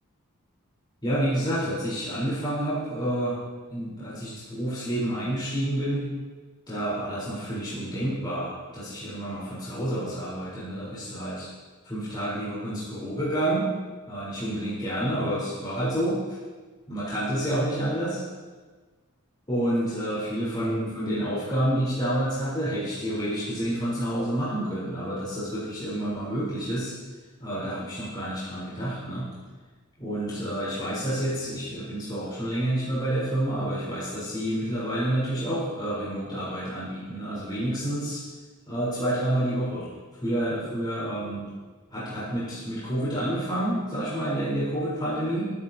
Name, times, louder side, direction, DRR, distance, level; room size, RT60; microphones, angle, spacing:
voice 1, 1.0-3.4 3.7-6.1 6.7-11.5 11.8-13.7 14.1-16.4 16.9-18.2 19.5-26.9 27.4-29.3 30.0-38.2 38.7-39.9 40.2-41.5 41.9-45.5, right 1 dB, 20° left, -10 dB, 4.1 m, -29 dB
22.5 x 9.7 x 2.9 m, 1.3 s
head